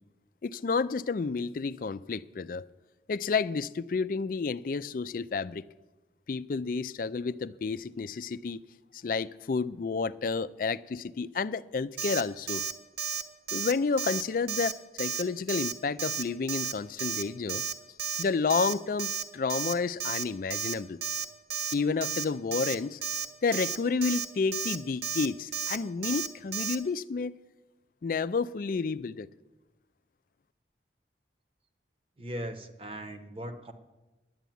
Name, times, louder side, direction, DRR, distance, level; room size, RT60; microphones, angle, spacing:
voice 1, 0.4-2.6 3.1-5.6 6.3-8.6 9.0-12.6 13.5-17.6 18.2-21.0 21.7-23.0 23.4-27.4 28.0-29.3, left 4 dB, 50° left, 0.4 m, -30 dB
Alarm, 12.0-12.2 12.5-12.7 13.0-13.2 13.5-13.7 14.0-14.2 14.5-14.7 15.0-15.2 15.5-15.7 16.0-16.2 16.5-16.7 17.0-17.2 17.5-17.7 18.0-18.2 18.5-18.7 19.0-19.2 19.5-19.7 20.0-20.2 20.5-20.7 21.0-21.2 21.5-21.7 22.0-22.2 22.5-22.7 23.0-23.3 23.5-23.8 24.0-24.3 24.5-24.8 25.0-25.3 25.5-25.8 26.0-26.3 26.5-26.8, right 7 dB, 60° right, 0.8 m, -32 dB
voice 2, 32.2-33.7, right 1 dB, 30° right, 0.9 m, -39 dB
11.0 x 8.2 x 9.2 m
head